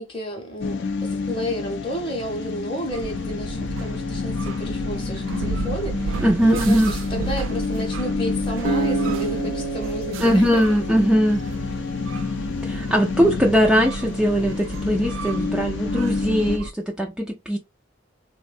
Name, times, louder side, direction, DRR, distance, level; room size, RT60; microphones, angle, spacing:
voice 1, 0.0-10.6, equal, 25° left, 0.7 m, -31 dB
sound 1, 0.6-16.6, left 4 dB, 65° left, 0.4 m, -29 dB
sound 2, 2.9-16.7, right 3 dB, 80° right, 0.3 m, -33 dB
voice 2, 6.2-6.9 10.2-11.4 12.6-17.6, equal, 5° right, 0.3 m, -20 dB
Acoustic guitar, 8.6-11.9, right 4 dB, 40° right, 0.6 m, -29 dB
3.5 x 2.1 x 2.4 m
head